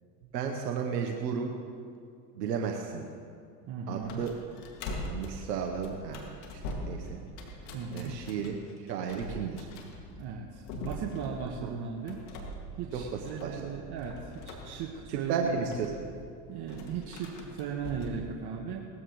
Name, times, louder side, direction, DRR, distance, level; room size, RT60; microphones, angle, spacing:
voice 1, 0.3-1.6 2.4-3.0 3.9-4.3 5.1-7.2 7.9-9.7 11.6-11.7 12.9-13.0 13.4-13.6 15.3-15.9, right 6 dB, 90° right, 3 dB, 1.1 m, -33 dB
voice 2, 3.7-4.2 7.7-8.2 10.1-12.2 12.8-15.7 16.5-18.9, right 6 dB, 55° right, 1 dB, 1.4 m, -37 dB
sound 1, 4.0-18.3, left 1 dB, 75° left, 2.3 m, -43 dB
19.0 x 14.0 x 3.2 m, 2.3 s
hypercardioid pair, 80°, 48 cm